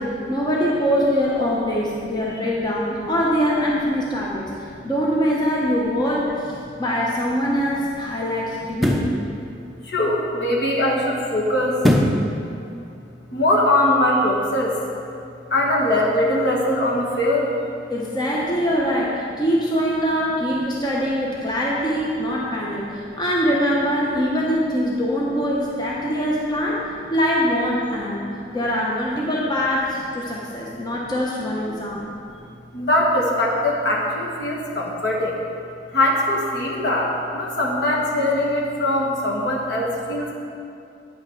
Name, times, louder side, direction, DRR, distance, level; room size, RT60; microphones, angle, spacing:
voice 1, 0.0-4.5 4.8-6.5 6.8-9.1 17.9-26.8 27.1-28.2 28.5-32.1, equal, 25° left, -4 dB, 0.9 m, -23 dB
sound 1, 6.8-7.0 8.7-9.2 11.8-12.3 12.7-12.8, equal, ahead, 0.6 m, -19 dB
voice 2, 9.8-11.8 13.3-14.7 15.5-17.5 28.4-28.6 32.7-35.4 35.9-40.3, left 1 dB, 65° left, -3 dB, 1.5 m, -21 dB
8.9 x 5.7 x 5.8 m, 2.5 s
head